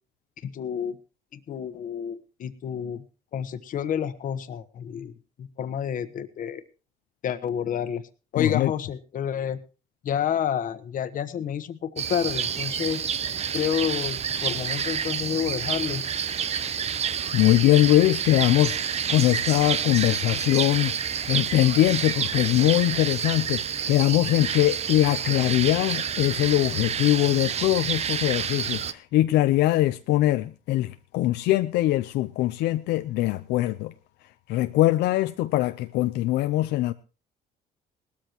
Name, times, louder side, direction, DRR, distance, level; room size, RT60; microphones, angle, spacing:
voice 1, 0.4-1.0 1.3-3.0 3.3-6.6 7.2-8.0 8.3-9.6 10.0-13.1 13.5-16.0, left 9 dB, 55° left, 1.2 m, -29 dB
voice 2, 8.4-8.7 17.3-18.8 19.1-20.9 21.3-33.9 34.5-36.9, left 15 dB, 85° left, 0.6 m, -22 dB
sound 1, 12.0-28.9, right 8 dB, 40° right, 0.7 m, -29 dB
19.0 x 13.0 x 3.0 m
cardioid pair, 110°, 17 cm